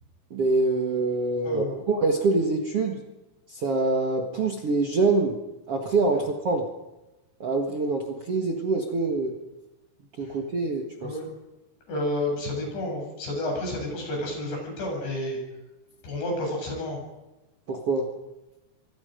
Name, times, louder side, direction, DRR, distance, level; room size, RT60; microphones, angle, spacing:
voice 1, 0.3-3.0 3.5-5.4 5.7-6.7 7.4-9.4 10.2-11.2 17.7-18.1, right 3 dB, 50° right, 2 dB, 1.9 m, -25 dB
voice 2, 11.9-15.4 16.0-17.0, left 1 dB, 75° left, 0 dB, 9.8 m, -30 dB
26.5 x 23.5 x 5.2 m, 1.0 s
omnidirectional pair, 5.0 m